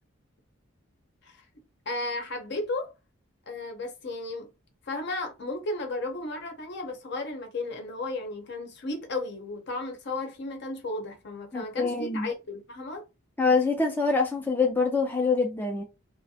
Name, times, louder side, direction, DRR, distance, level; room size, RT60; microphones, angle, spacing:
voice 1, 1.9-2.9 3.5-4.5 4.9-13.1, left 2 dB, 60° left, 0.7 m, -34 dB
voice 2, 11.5-12.3 13.4-15.8, left 4 dB, 10° left, 0.3 m, -25 dB
2.4 x 2.0 x 2.7 m
head